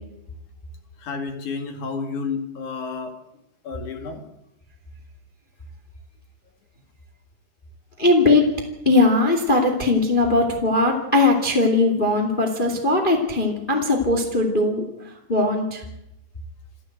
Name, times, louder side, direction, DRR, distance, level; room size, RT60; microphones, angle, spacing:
voice 1, 1.0-3.1 3.6-4.2, left 4 dB, 50° left, 5 dB, 3.4 m, -30 dB
voice 2, 8.0-8.4 8.9-14.8 15.3-15.8, left 2 dB, 15° left, 3 dB, 1.9 m, -19 dB
27.5 x 14.0 x 8.0 m, 0.88 s
omnidirectional pair, 4.8 m